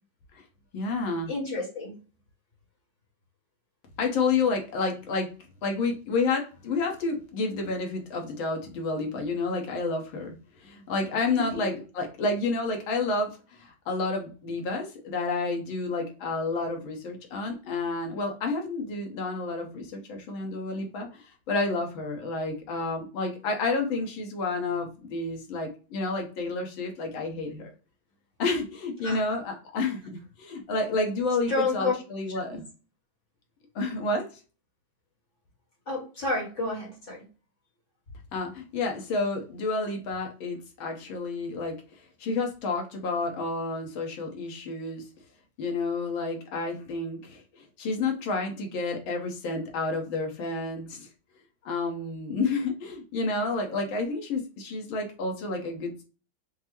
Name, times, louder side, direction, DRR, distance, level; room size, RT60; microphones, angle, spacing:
voice 1, 0.7-1.3 4.0-5.3 5.6-27.7 28.4-30.1 30.4-32.6 33.8-34.3 38.3-41.8 42.2-45.0 45.6-51.1 51.6-56.0, left 3 dB, 70° left, 2 dB, 1.7 m, -30 dB
voice 2, 1.3-2.0 11.4-11.6 29.0-29.4 31.5-31.9 35.9-37.3, left 3 dB, 40° left, -2 dB, 1.3 m, -30 dB
5.8 x 2.1 x 2.9 m, 0.35 s
omnidirectional pair, 2.3 m